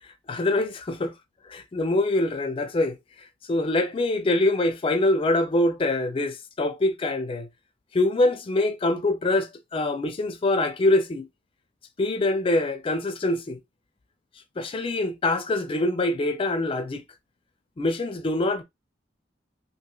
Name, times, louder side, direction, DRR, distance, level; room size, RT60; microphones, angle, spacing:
voice 1, 0.3-1.1 1.5-3.0 3.5-7.5 7.9-11.3 12.0-13.6 14.6-17.0 17.8-18.6, left 2 dB, 30° left, 0.4 m, -24 dB
2.9 x 2.8 x 2.3 m
head